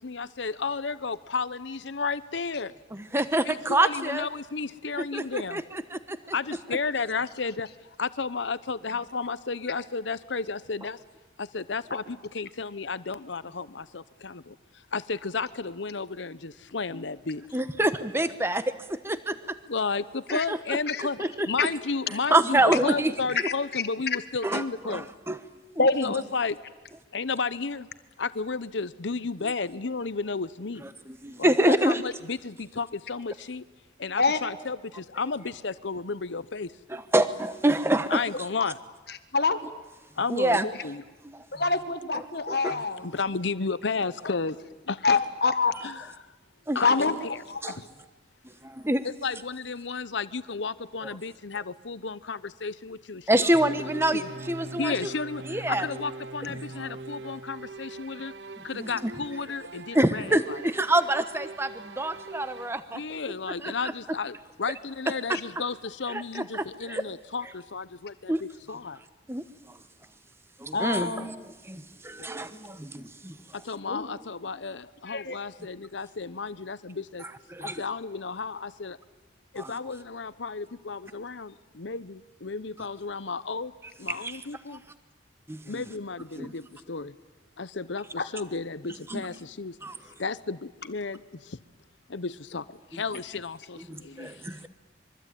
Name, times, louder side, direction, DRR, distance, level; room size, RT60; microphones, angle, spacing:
voice 1, 0.0-2.7 3.4-5.6 6.3-7.7 8.0-11.0 11.4-14.6 14.9-17.4 19.7-21.2 21.5-25.1 26.0-26.6 27.1-27.9 28.2-30.8 31.4-33.6 34.0-36.7 38.1-38.8 40.2-41.0 42.7-44.6 44.9-45.2 45.8-46.1 46.7-47.4 47.7-47.8 49.2-54.3 54.8-58.3 58.6-60.6 62.9-69.0 73.5-77.3 77.6-79.0 79.5-83.7 84.0-84.8 85.7-87.1 87.6-89.8 90.2-91.6 92.1-92.6 92.9-94.5, left 4 dB, 80° left, 16 dB, 0.9 m, -33 dB
voice 2, 2.9-4.3 5.1-6.3 17.5-18.6 18.9-19.6 20.3-20.8 21.2-21.5 22.1-23.1 23.4-23.5 24.4-25.4 25.7-25.9 30.8-32.0 36.9-38.2 40.3-40.7 41.2-41.4 42.1-42.8 46.7-46.8 47.6-47.8 48.6-49.1 53.3-55.1 55.5-55.9 56.8-56.9 58.7-59.1 59.9-63.0 63.5-63.7 65.3-65.4 66.1-67.0 68.3-68.4 69.3-69.4 70.6-73.4 77.5-77.8 79.6-79.7 84.1-84.4 84.7-84.8 85.5-85.8 86.4-86.5 89.1-89.3 89.8-90.0 92.9-93.0 93.9-94.7, right 1 dB, 15° right, 12 dB, 1.1 m, -27 dB
voice 3, 25.8-26.1 34.2-34.4 39.3-39.6 41.5-43.1 45.0-45.7 46.8-47.1 47.5-47.6 70.7-71.3 72.3-72.5 73.9-74.1 75.1-75.4 88.2-88.3, left 4 dB, 60° left, 10 dB, 1.6 m, -25 dB
sound 1, 53.5-62.8, right 3 dB, 65° right, 0.9 m, -42 dB
25.0 x 23.5 x 9.2 m, 1.2 s
head